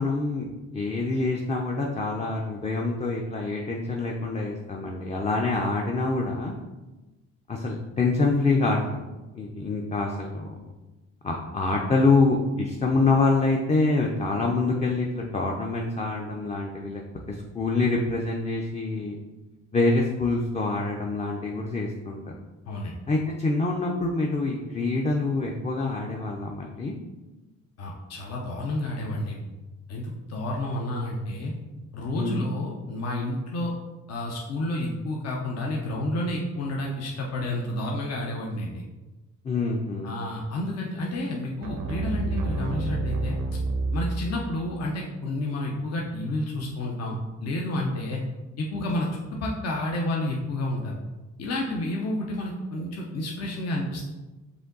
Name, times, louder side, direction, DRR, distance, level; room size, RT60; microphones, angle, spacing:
voice 1, 0.0-6.5 7.5-9.0 9.3-10.7 11.2-17.0 17.3-19.2 19.7-22.3 23.1-26.9 32.1-32.4 39.4-40.1, left 3 dB, 25° left, 0 dB, 0.5 m, -26 dB
voice 2, 27.8-29.4 29.9-31.5 31.9-33.7 34.1-38.8 40.0-43.4 43.9-48.2 48.6-51.0 51.4-54.1, left 1 dB, 55° left, -1 dB, 0.8 m, -30 dB
sound 1, 41.6-44.8, right 2 dB, 80° right, 0.6 m, -29 dB
5.0 x 2.7 x 3.8 m, 1.1 s
cardioid pair, 90°, 30 cm